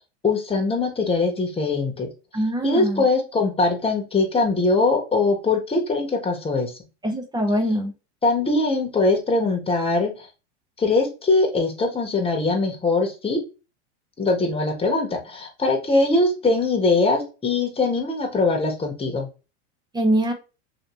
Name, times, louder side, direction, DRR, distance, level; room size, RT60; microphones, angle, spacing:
voice 1, 0.2-2.1 2.6-6.7 8.2-10.3 10.8-13.4 14.2-19.3, left 3 dB, 15° left, 2 dB, 1.2 m, -22 dB
voice 2, 2.3-3.0 7.0-7.9 19.9-20.3, right 1 dB, 10° right, 4 dB, 0.6 m, -23 dB
3.0 x 2.8 x 3.0 m, 0.31 s
hypercardioid pair, 100°, 36 cm